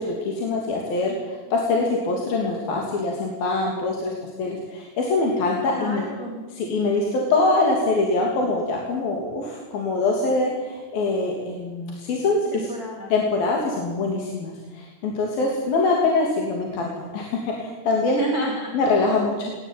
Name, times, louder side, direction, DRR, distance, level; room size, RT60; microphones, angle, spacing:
voice 1, 0.0-6.0 6.5-12.7 13.1-18.3 18.7-19.5, left 3 dB, 55° left, -1 dB, 4.5 m, -24 dB
voice 2, 5.7-6.5 12.5-13.1 18.2-18.8, right 1 dB, 20° right, -1 dB, 3.9 m, -31 dB
20.0 x 19.0 x 9.2 m, 1.3 s
omnidirectional pair, 5.2 m